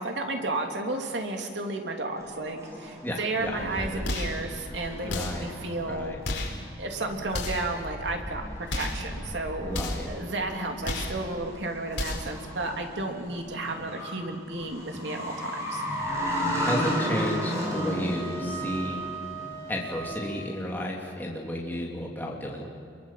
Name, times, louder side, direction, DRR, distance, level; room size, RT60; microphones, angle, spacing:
voice 1, 0.0-6.2 6.8-9.8 10.1-15.8, right 2 dB, 80° right, 2 dB, 3.1 m, -32 dB
sound 1, 2.2-20.2, equal, 15° right, 7.0 m, -35 dB
voice 2, 3.0-4.0 5.0-5.5 5.9-6.2 9.6-10.1 15.1-15.2 16.6-19.0 19.7-22.7, equal, 10° left, -2 dB, 3.1 m, -33 dB
sound 2, 4.0-4.4 5.1-5.5 6.2-6.6 7.3-7.7 8.7-9.1 9.7-10.1 10.8-11.2 11.9-12.4, left 2 dB, 90° left, 4.4 m, -32 dB
Wind instrument woodwind instrument, 15.9-20.4, right 5 dB, 40° right, 7.1 m, -39 dB
27.5 x 23.0 x 7.6 m, 2.2 s
head